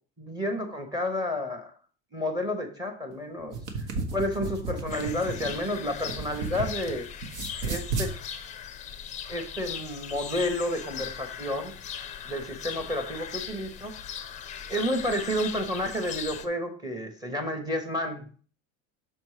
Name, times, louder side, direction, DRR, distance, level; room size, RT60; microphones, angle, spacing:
voice 1, 0.2-1.7 2.1-3.6 4.1-7.1 7.6-8.1 9.3-11.7 12.3-13.9 14.7-18.4, left 1 dB, 15° right, 6 dB, 0.8 m, -30 dB
sound 1, 3.4-6.9 7.2-8.1, right 3 dB, 90° right, 1.4 m, -33 dB
sound 2, 4.9-16.5, left 8 dB, 25° left, 0.4 m, -39 dB
6.3 x 4.3 x 4.8 m, 0.42 s
cardioid pair, 165°, 31 cm